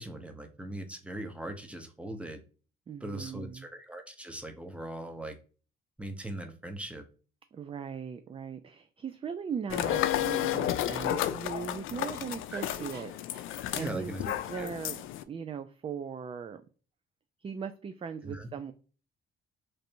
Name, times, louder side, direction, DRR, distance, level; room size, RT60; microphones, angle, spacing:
voice 1, 0.0-2.4 3.0-5.4 6.0-7.0 12.5-12.9 13.8-14.2 14.6-14.7 18.2-18.5, right 1 dB, 5° right, 0.8 m, -40 dB
voice 2, 2.9-3.7 7.5-16.6 17.4-18.7, right 7 dB, 30° right, 0.3 m, -39 dB
sound 1, 9.7-15.2, left 12 dB, 85° left, 0.4 m, -32 dB
Dog, 11.3-14.7, right 2 dB, 55° right, 1.8 m, -57 dB
3.2 x 2.6 x 4.3 m
cardioid pair, 90°, 20 cm